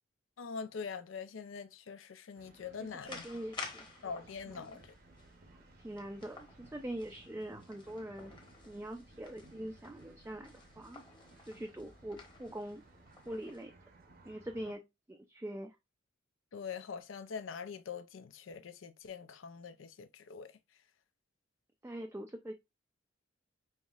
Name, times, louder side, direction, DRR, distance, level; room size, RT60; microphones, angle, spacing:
voice 1, 0.4-3.2 4.0-4.9 16.5-20.5, left 6 dB, 80° left, 0.5 m, -44 dB
sound 1, 2.3-14.7, right 2 dB, 50° right, 0.8 m, -60 dB
voice 2, 2.8-4.0 4.5-4.8 5.8-8.3 8.7-11.0 11.4-12.8 13.3-13.7 14.2-15.8 21.8-22.5, right 1 dB, 10° right, 0.3 m, -43 dB
sound 2, 3.0-13.6, left 3 dB, 25° left, 1.0 m, -52 dB
5.4 x 3.1 x 2.3 m
head